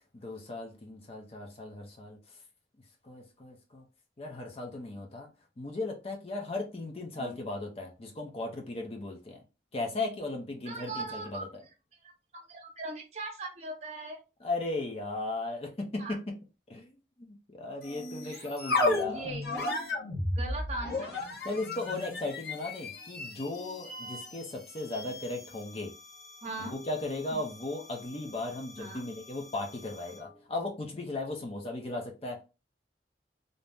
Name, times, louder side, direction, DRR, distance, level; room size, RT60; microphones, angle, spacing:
voice 1, 0.1-2.2 3.0-3.9 4.2-5.3 5.6-9.4 9.7-11.5 14.4-16.3 16.7-16.9 17.2-19.3 21.4-25.9 26.6-32.4, left 2 dB, 35° left, 0.5 m, -36 dB
voice 2, 10.7-11.4 12.3-14.2 16.0-16.2 18.2-18.4 19.1-19.4 20.4-21.3 26.4-26.7 28.8-29.0, right 2 dB, 40° right, 0.8 m, -39 dB
sound 1, 17.8-30.3, left 2 dB, 60° left, 0.8 m, -36 dB
2.6 x 2.0 x 3.3 m
head